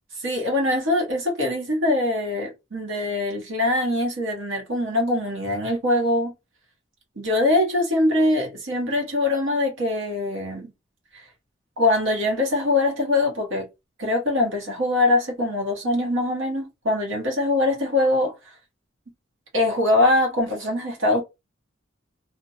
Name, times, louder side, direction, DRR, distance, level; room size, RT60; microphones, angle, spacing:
voice 1, 0.2-6.3 7.2-10.7 11.8-13.7 14.0-18.3 19.5-21.2, left 2 dB, 85° right, 1.1 m, -23 dB
2.5 x 2.1 x 2.9 m
head